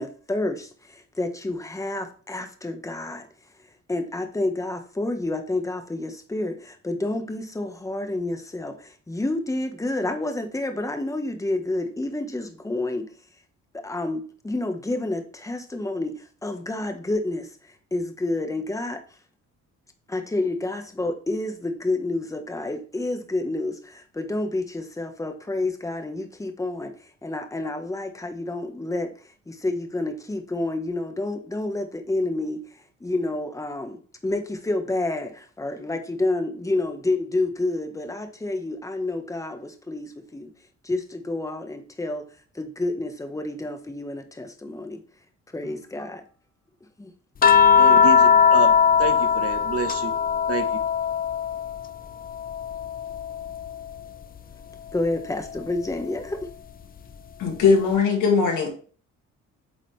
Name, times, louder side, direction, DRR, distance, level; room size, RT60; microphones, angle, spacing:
voice 1, 0.0-3.2 3.9-13.0 13.7-17.5 17.9-19.0 20.1-26.9 27.2-29.1 29.5-32.6 33.0-40.5 40.8-42.2 42.5-45.0 45.5-46.2 47.0-47.1 54.9-56.5, left 2 dB, 10° left, 1.0 m, -29 dB
sound 1, 47.4-51.9 52.3-53.9 55.4-55.6, left 7 dB, 30° left, 0.5 m, -20 dB
voice 2, 47.8-50.1 50.5-50.8, right 5 dB, 50° right, 1.1 m, -29 dB
voice 3, 57.4-58.7, left 5 dB, 85° left, 2.0 m, -19 dB
8.6 x 3.8 x 3.2 m
cardioid pair, 90°, 30 cm